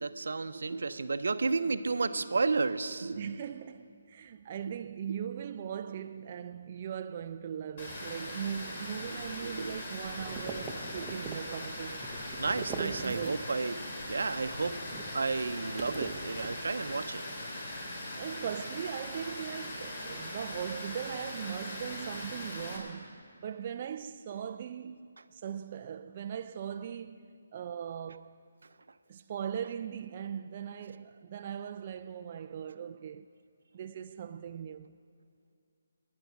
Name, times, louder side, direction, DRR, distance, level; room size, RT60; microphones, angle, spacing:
voice 1, 0.0-3.4 4.7-4.8 9.1-9.8 12.4-13.7 14.1-17.2, right 4 dB, 75° right, 0.7 m, -32 dB
voice 2, 3.2-12.0 12.7-13.4 18.1-27.3 27.5-28.3 29.1-33.3 33.7-35.0, right 8 dB, 35° right, 0.3 m, -39 dB
Water, 7.8-22.8, left 1 dB, 45° left, 3.7 m, -40 dB
sound 1, 10.1-13.6 13.9-17.0, right 4 dB, 10° right, 0.8 m, -44 dB
18.5 x 9.6 x 6.0 m
hypercardioid pair, 160°, 0 cm